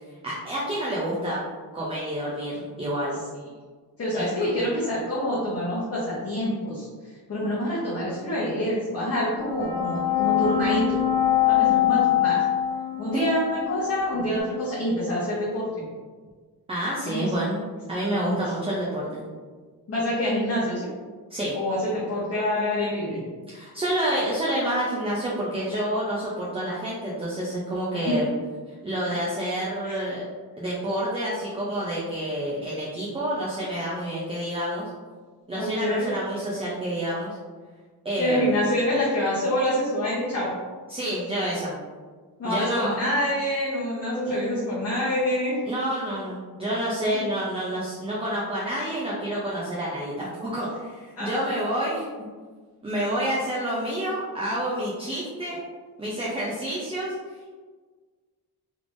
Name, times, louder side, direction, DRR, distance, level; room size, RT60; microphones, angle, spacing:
voice 1, 0.2-1.4 1.7-3.2 4.1-4.3 13.1-13.2 16.7-17.6 17.9-19.2 21.3-21.6 23.5-28.3 28.8-30.2 30.6-34.9 35.5-37.4 38.0-38.6 40.9-41.7 42.4-43.0 45.7-52.3 52.8-55.6 56.0-57.1, right 1 dB, 15° right, -6 dB, 0.5 m, -28 dB
voice 2, 4.0-6.9 7.3-11.0 11.4-12.4 13.0-15.7 17.1-17.3 18.2-18.4 19.9-20.9 21.5-23.2 28.1-28.2 29.8-30.0 35.5-36.2 38.2-40.5 42.4-45.6 51.2-51.4, equal, 40° left, -9 dB, 0.9 m, -26 dB
sound 1, 9.4-14.4, left 12 dB, 75° left, 0.6 m, -24 dB
3.4 x 3.3 x 2.5 m, 1.5 s
wide cardioid pair, 155°, 39 cm